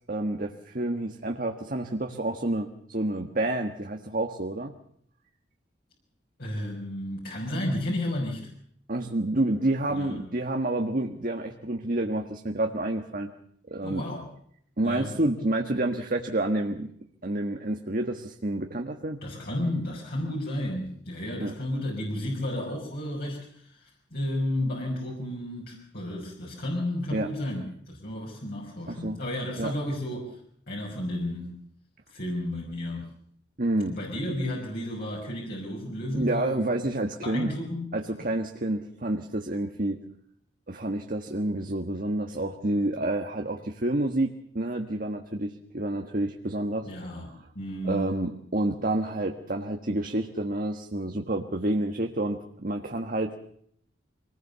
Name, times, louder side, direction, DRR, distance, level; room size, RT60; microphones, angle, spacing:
voice 1, 0.1-4.7 8.9-13.3 13.7-14.0 14.8-16.9 17.2-19.2 21.4-21.5 27.1-27.3 28.9-29.2 29.6-29.7 33.6-34.0 36.1-37.6 37.9-40.0 40.7-47.1 47.8-53.4, right 1 dB, 45° right, 4 dB, 1.5 m, -29 dB
voice 2, 6.4-8.5 9.9-10.2 13.8-14.2 14.8-15.1 19.2-30.4 30.7-31.5 32.1-33.1 33.9-36.6 37.2-37.9 46.8-48.1, left 1 dB, 55° left, -2 dB, 5.7 m, -32 dB
25.0 x 19.5 x 6.9 m, 0.66 s
head